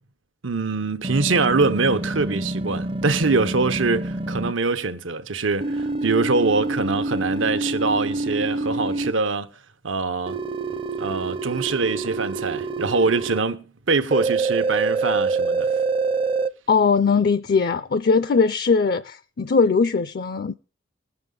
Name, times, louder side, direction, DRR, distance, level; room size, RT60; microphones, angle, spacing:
voice 1, 0.4-9.5 9.8-10.4 11.0-15.7, right 3 dB, 85° right, 1.0 m, -23 dB
sound 1, 1.0-4.5 5.6-9.1 10.3-13.4 14.1-16.5, right 3 dB, 25° right, 0.5 m, -26 dB
voice 2, 16.7-20.5, left 5 dB, 50° left, 0.4 m, -20 dB
19.5 x 7.0 x 3.8 m
head